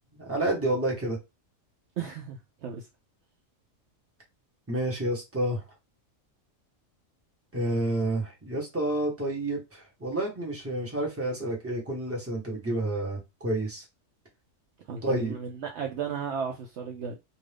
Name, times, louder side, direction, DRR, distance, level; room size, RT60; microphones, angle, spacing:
voice 1, 0.2-1.2 4.7-5.6 7.5-13.8 15.0-15.3, right 1 dB, 10° right, 1.1 m, -29 dB
voice 2, 2.0-2.9 14.9-17.1, right 6 dB, 65° right, 0.8 m, -34 dB
2.6 x 2.5 x 3.3 m
omnidirectional pair, 1.4 m